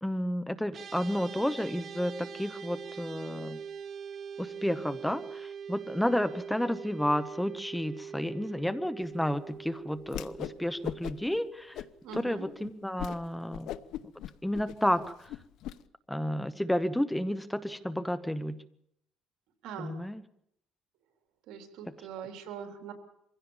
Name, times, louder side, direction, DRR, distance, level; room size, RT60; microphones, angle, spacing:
voice 1, 0.0-3.6 4.4-11.8 12.1-13.7 14.4-15.0 16.1-18.6 19.8-20.2, left 1 dB, 5° left, 13 dB, 0.9 m, -31 dB
sound 1, 0.7-12.2, right 7 dB, 45° right, 1.0 m, -44 dB
Whoosh swoosh swish, 10.1-10.6 10.8-11.4 11.7-12.2 12.6-12.7 13.0-13.2 13.5-15.7, left 12 dB, 75° left, 0.9 m, -39 dB
voice 2, 12.0-12.5 19.6-20.0 21.5-22.9, right 7 dB, 80° right, 6 dB, 3.4 m, -42 dB
24.0 x 16.0 x 7.2 m, 0.75 s
cardioid pair, 125°, 0 cm